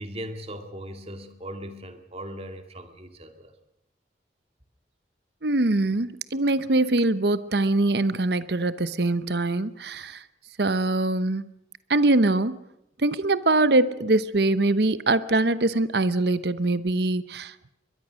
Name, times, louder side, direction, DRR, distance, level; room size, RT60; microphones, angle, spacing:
voice 1, 0.0-3.5, equal, 35° right, 2.2 m, -38 dB
voice 2, 5.4-10.2 10.6-11.5 11.9-12.6 13.0-17.7, right 2 dB, 65° right, 0.9 m, -23 dB
22.5 x 21.5 x 6.3 m
head